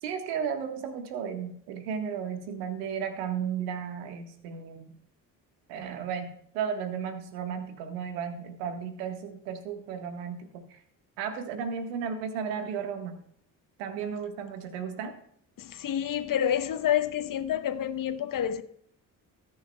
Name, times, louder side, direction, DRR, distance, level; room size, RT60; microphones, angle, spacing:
voice 1, 0.0-5.0 5.7-10.8 11.2-13.2 13.8-15.2, right 7 dB, 70° right, 1.6 m, -34 dB
voice 2, 15.6-18.6, left 10 dB, 40° left, 1.0 m, -28 dB
19.0 x 9.3 x 2.3 m
figure-of-eight pair, 45°, 49 cm